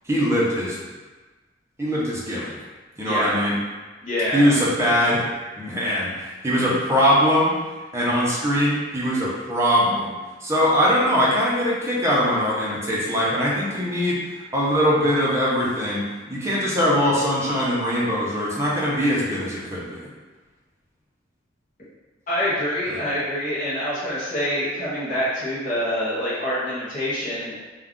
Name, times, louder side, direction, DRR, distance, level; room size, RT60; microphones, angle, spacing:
voice 1, 0.1-0.8 1.8-2.5 3.0-3.6 4.3-5.2 5.6-7.5 7.9-10.2 10.4-14.2 14.5-20.0 22.9-23.0, equal, 15° right, -6 dB, 0.6 m, -21 dB
voice 2, 4.0-4.5 22.3-27.6, left 1 dB, 45° left, -9 dB, 0.7 m, -26 dB
2.4 x 2.2 x 3.6 m, 1.3 s
head